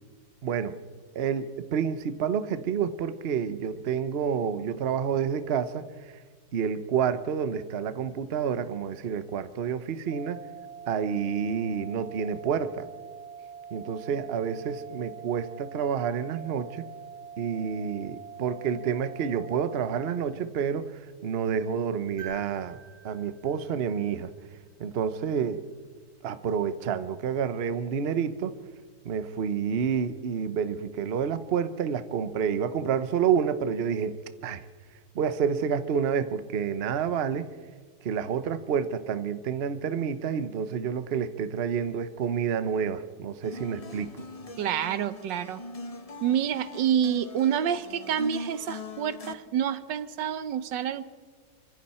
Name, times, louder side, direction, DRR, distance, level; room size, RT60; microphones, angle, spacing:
voice 1, 0.4-0.8 1.1-6.1 6.5-10.4 10.9-12.9 13.7-16.8 17.4-24.3 24.8-25.6 26.2-28.5 29.0-34.1 34.4-34.7 35.1-37.5 38.0-44.3, right 7 dB, 45° right, 12 dB, 0.8 m, -29 dB
sound 1, 10.1-20.1, right 7 dB, 55° left, 3.9 m, -44 dB
sound 2, 22.2-24.5 26.5-26.6, right 4 dB, 15° right, 6.1 m, -48 dB
sound 3, 43.4-49.3, left 2 dB, 25° left, 0.8 m, -41 dB
voice 2, 44.6-45.6 46.2-51.0, right 9 dB, 85° right, 13 dB, 1.6 m, -28 dB
26.0 x 24.0 x 4.3 m, 1.5 s
omnidirectional pair, 1.9 m